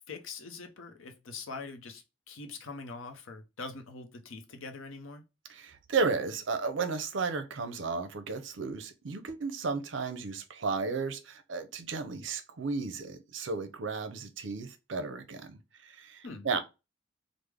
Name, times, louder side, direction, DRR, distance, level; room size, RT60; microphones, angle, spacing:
voice 1, 0.0-5.2 16.2-16.5, left 3 dB, 90° left, 0.7 m, -43 dB
voice 2, 5.5-16.6, right 4 dB, 70° right, 0.6 m, -34 dB
3.3 x 2.0 x 3.4 m
head